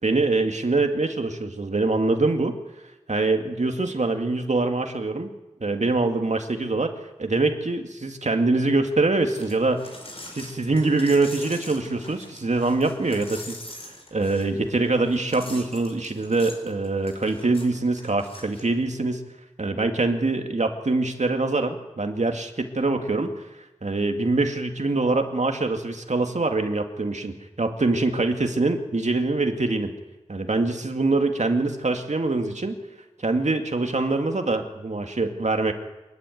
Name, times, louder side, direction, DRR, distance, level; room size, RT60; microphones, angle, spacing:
voice 1, 0.0-2.5 3.1-5.3 5.6-6.9 7.2-9.9 10.3-13.6 14.1-19.2 19.6-23.3 23.8-29.9 30.3-32.8 33.2-35.7, right 3 dB, 80° right, 5 dB, 2.1 m, -24 dB
sound 1, 9.3-19.0, left 1 dB, 55° left, 5.4 m, -43 dB
26.5 x 11.5 x 9.3 m, 1.0 s
wide cardioid pair, 55°, 12 cm